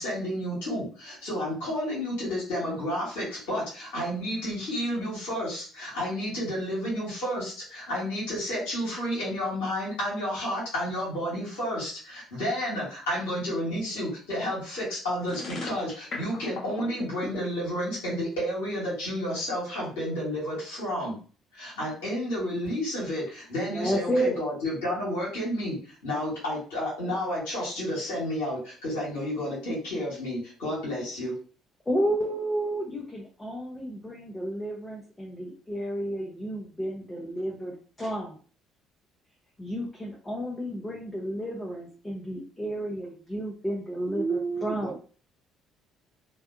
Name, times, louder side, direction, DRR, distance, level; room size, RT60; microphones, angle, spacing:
voice 1, 0.0-21.2 21.5-31.3, equal, 70° left, -7 dB, 1.0 m, -31 dB
sound 1, 15.2-17.4, left 4 dB, 50° left, 0.7 m, -36 dB
voice 2, 23.7-24.4 31.9-38.4 39.6-44.9, equal, 15° left, -3 dB, 0.6 m, -31 dB
voice 3, 44.1-45.0, right 5 dB, 30° right, 7 dB, 0.4 m, -31 dB
2.6 x 2.2 x 2.4 m, 0.41 s
figure-of-eight pair, 50°, 0 cm